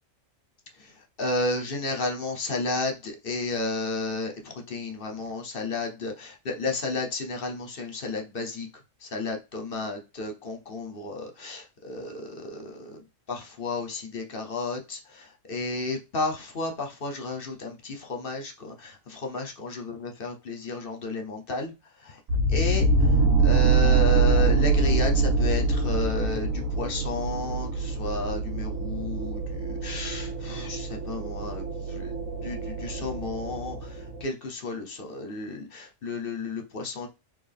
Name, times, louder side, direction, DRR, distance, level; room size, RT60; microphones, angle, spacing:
voice 1, 0.7-8.7 9.0-13.0 13.3-22.2 22.5-32.1 32.4-37.1, left 3 dB, 45° left, 3 dB, 1.1 m, -32 dB
sound 1, 22.3-34.2, right 3 dB, 90° right, 1.4 m, -25 dB
4.3 x 3.1 x 3.5 m, 0.27 s
omnidirectional pair, 1.3 m